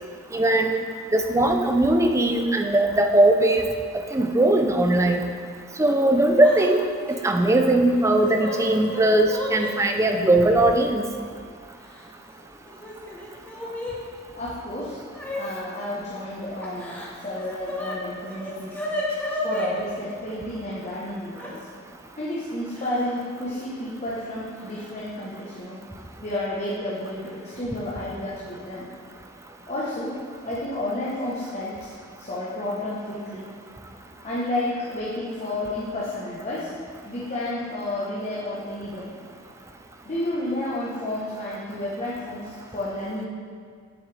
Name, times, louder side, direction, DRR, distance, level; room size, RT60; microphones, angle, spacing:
voice 1, 0.3-0.8 1.1-3.6 4.1-5.2 5.8-6.8 7.2-11.0, right 1 dB, 15° right, 4 dB, 0.5 m, -19 dB
Yell / Crying sobbing, 6.4-6.7 7.0-7.2 7.9-9.7 10.7-10.8 11.8-12.3 12.7-14.0 15.1-15.4 16.6-17.9 18.3-19.7 21.4-21.5 22.7-23.2 23.4-23.6 24.7-24.8 25.3-25.6, left 1 dB, 10° left, 1.1 m, -33 dB
voice 2, 14.3-15.0 15.4-18.8 19.4-21.6 22.2-25.8 26.2-28.9 29.7-33.5 34.2-36.7 37.0-39.1 40.0-43.3, left 1 dB, 35° left, -7 dB, 1.1 m, -31 dB
9.2 x 7.3 x 3.4 m, 2.1 s
head